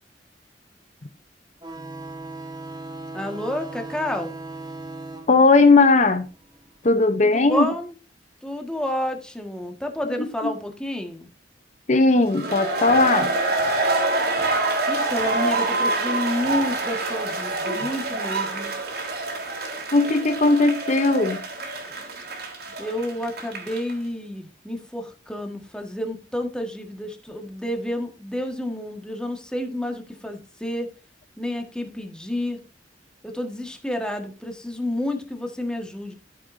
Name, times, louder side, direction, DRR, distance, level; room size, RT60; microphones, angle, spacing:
sound 1, 1.6-6.8, right 2 dB, 25° right, 1.5 m, -38 dB
voice 1, 3.1-4.4 7.2-7.9 8.4-11.3 14.9-18.7 22.8-30.9 31.4-32.6 33.2-36.1, left 1 dB, 5° left, 1.6 m, -30 dB
voice 2, 5.3-6.3 6.8-7.7 10.0-10.5 11.9-13.3 19.9-21.4, left 3 dB, 40° left, 0.8 m, -18 dB
sound 2, 12.3-23.9, right 2 dB, 60° right, 3.2 m, -26 dB
13.0 x 7.5 x 2.7 m
head